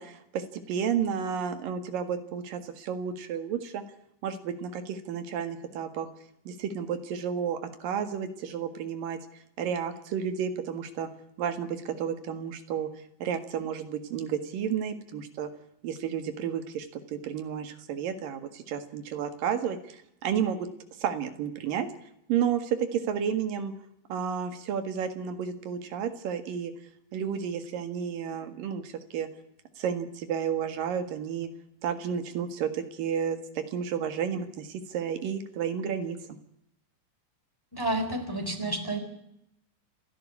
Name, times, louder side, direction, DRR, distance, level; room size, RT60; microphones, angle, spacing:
voice 1, 0.0-3.8 4.2-6.1 6.5-9.2 9.6-11.1 11.4-12.9 13.2-15.5 15.8-20.7 21.0-21.9 22.3-23.7 24.1-26.7 27.1-29.3 29.8-31.5 31.8-36.4, right 8 dB, 85° right, 8 dB, 3.5 m, -31 dB
voice 2, 37.7-39.0, right 1 dB, 5° left, 6 dB, 3.3 m, -30 dB
29.0 x 12.0 x 9.8 m, 0.77 s
omnidirectional pair, 3.9 m